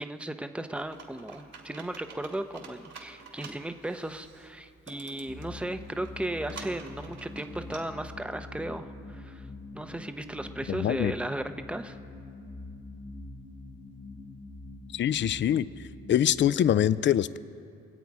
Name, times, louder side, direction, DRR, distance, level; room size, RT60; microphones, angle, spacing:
voice 1, 0.0-9.5 9.7-12.0, right 1 dB, 5° right, 8 dB, 0.7 m, -36 dB
Computer keyboard, 0.8-7.8, right 5 dB, 60° right, 2.5 m, -49 dB
sound 1, 5.3-16.6, left 2 dB, 15° left, 1.2 m, -44 dB
voice 2, 10.7-11.1 14.9-15.7 16.1-17.4, left 10 dB, 40° left, 17 dB, 0.4 m, -24 dB
25.0 x 8.4 x 4.8 m, 2.5 s
cardioid pair, 90°, 30 cm